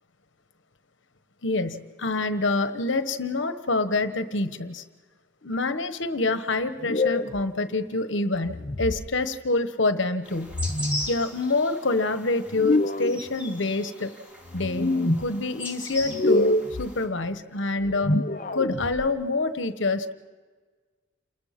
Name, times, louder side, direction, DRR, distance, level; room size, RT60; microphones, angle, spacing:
voice 1, 1.4-4.8 5.4-10.6 11.1-14.1 14.5-14.9 15.2-18.2 18.5-20.1, left 3 dB, 70° left, 10 dB, 1.2 m, -26 dB
sound 1, 6.8-7.4 8.4-9.1 10.5-11.1 12.5-13.2 14.5-15.3 16.0-16.9 17.8-19.1, left 2 dB, 40° left, 0.8 m, -26 dB
sound 2, 10.2-17.0, left 1 dB, 5° right, 3.2 m, -39 dB
29.0 x 21.0 x 5.9 m, 1.5 s
head